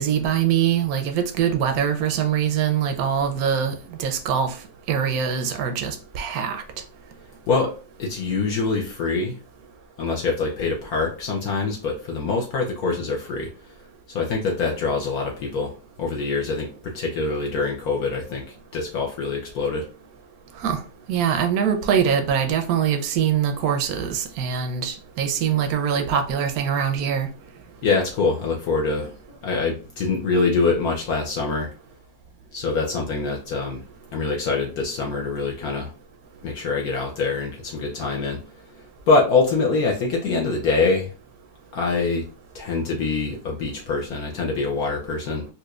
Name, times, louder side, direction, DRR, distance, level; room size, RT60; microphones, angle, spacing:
voice 1, 0.0-4.5 4.9-6.6 20.6-20.8 21.1-27.3, right 8 dB, 70° right, 0.9 m, -23 dB
voice 2, 8.0-9.4 10.0-13.5 14.1-15.7 16.0-18.4 18.7-19.9 27.8-31.7 32.5-33.8 34.1-35.9 36.4-38.4 39.1-41.1 41.7-42.3 42.5-45.5, left 4 dB, 65° left, 1.1 m, -24 dB
4.4 x 2.5 x 2.3 m
omnidirectional pair, 1.9 m